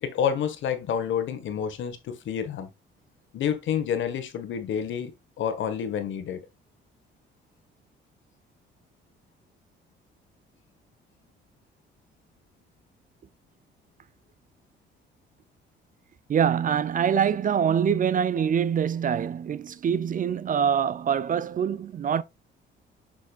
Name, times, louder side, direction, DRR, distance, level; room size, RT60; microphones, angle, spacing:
voice 1, 0.0-2.7 3.3-5.1 5.4-6.4, left 8 dB, 75° left, 1.3 m, -28 dB
voice 2, 16.3-22.2, right 8 dB, 45° right, 0.5 m, -24 dB
7.1 x 6.1 x 2.3 m
cardioid pair, 90°, 20 cm